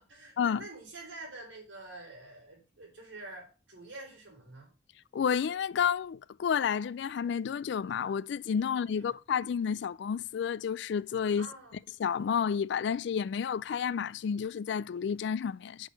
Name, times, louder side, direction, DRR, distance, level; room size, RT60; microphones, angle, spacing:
voice 1, 0.0-4.7 9.0-9.1 11.4-11.8, right 2 dB, 80° right, 4.0 m, -47 dB
voice 2, 5.1-11.5 12.0-15.9, left 7 dB, 65° left, 0.3 m, -30 dB
6.4 x 6.3 x 5.1 m
head